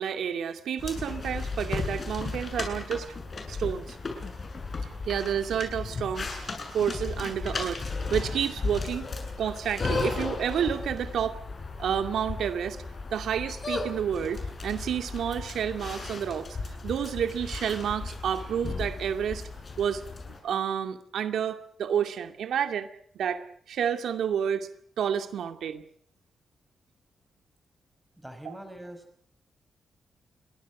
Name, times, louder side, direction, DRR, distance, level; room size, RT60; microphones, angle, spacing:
voice 1, 0.0-3.2 3.5-4.0 5.1-7.8 8.1-9.1 9.4-11.4 11.8-12.8 13.1-16.6 16.8-19.5 19.8-20.0 20.4-22.9 23.1-24.7 25.0-25.8 28.5-28.6, right 8 dB, 85° right, 8 dB, 2.3 m, -30 dB
sound 1, 0.8-20.4, left 3 dB, 35° left, 7.9 m, -35 dB
voice 2, 28.2-29.3, right 1 dB, 5° right, 7 dB, 5.6 m, -44 dB
30.0 x 23.5 x 6.2 m, 0.63 s
wide cardioid pair, 155°, 0 cm